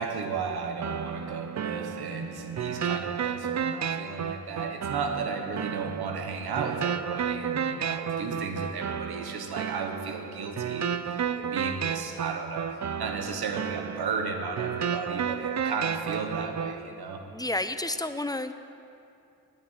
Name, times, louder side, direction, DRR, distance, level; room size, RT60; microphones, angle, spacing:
voice 1, 0.0-10.9 11.4-17.3, right 5 dB, 80° right, 4 dB, 1.4 m, -34 dB
sound 1, 0.8-16.8, right 7 dB, 45° right, 0.6 m, -32 dB
voice 2, 17.2-18.5, left 1 dB, 10° left, 10 dB, 0.6 m, -31 dB
9.5 x 9.1 x 9.1 m, 2.6 s
cardioid pair, 65°, 38 cm